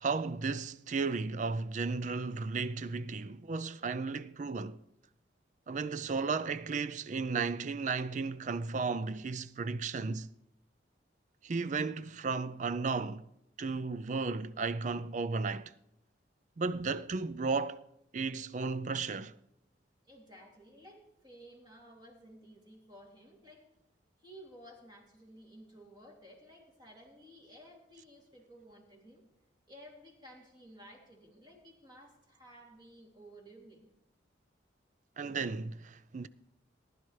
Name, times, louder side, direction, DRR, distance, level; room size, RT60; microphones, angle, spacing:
voice 1, 0.0-4.8 5.7-10.3 11.4-13.2 13.6-15.7 16.6-17.8 18.1-19.3 35.2-36.3, right 4 dB, 40° right, 0.4 m, -34 dB
voice 2, 20.0-23.6 24.2-29.2 29.7-33.9, equal, 25° right, 2.7 m, -55 dB
19.5 x 11.0 x 3.2 m
head